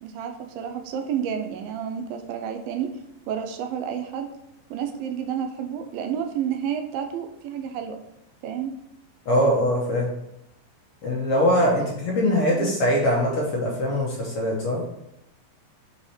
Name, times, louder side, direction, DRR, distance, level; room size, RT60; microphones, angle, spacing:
voice 1, 0.0-2.9 3.3-4.3 4.7-8.0 8.4-8.7 12.5-12.7, right 8 dB, 85° right, 6 dB, 2.5 m, -30 dB
voice 2, 9.2-10.1 11.0-14.8, equal, 65° left, -3 dB, 1.5 m, -22 dB
5.7 x 4.8 x 4.3 m, 0.82 s
omnidirectional pair, 4.0 m